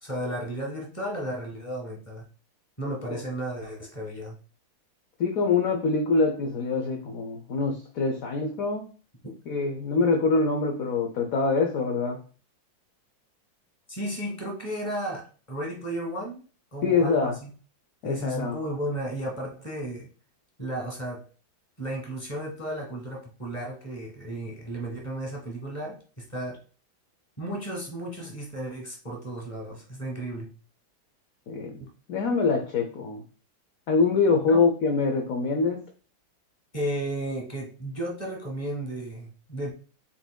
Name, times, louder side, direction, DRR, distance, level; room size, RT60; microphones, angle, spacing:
voice 1, 0.0-2.3 2.8-4.4 13.9-16.4 16.7-17.5 18.0-20.1 20.6-21.2 21.8-26.0 26.3-26.6 27.4-30.5 34.5-34.6 36.7-39.7, right 1 dB, 15° left, -1 dB, 1.7 m, -34 dB
voice 2, 5.2-8.8 9.5-12.2 16.8-17.3 18.0-18.6 31.5-33.2 33.9-35.8, left 4 dB, 60° left, 2 dB, 0.9 m, -24 dB
5.9 x 4.0 x 2.2 m, 0.37 s
omnidirectional pair, 2.1 m